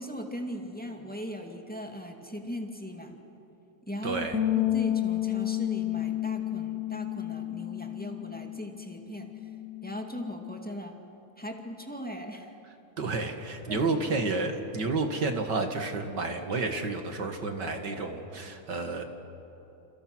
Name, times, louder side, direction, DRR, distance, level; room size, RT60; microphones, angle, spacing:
voice 1, 0.0-3.2 3.9-9.3 9.8-11.0 11.4-12.6 13.7-14.3, equal, 5° left, 2 dB, 2.0 m, -39 dB
voice 2, 4.0-4.4 13.0-19.0, right 3 dB, 55° right, 5 dB, 2.3 m, -30 dB
sound 1, 4.3-10.6, left 13 dB, 45° left, 1.9 m, -31 dB
29.0 x 28.5 x 6.2 m, 3.0 s
omnidirectional pair, 2.4 m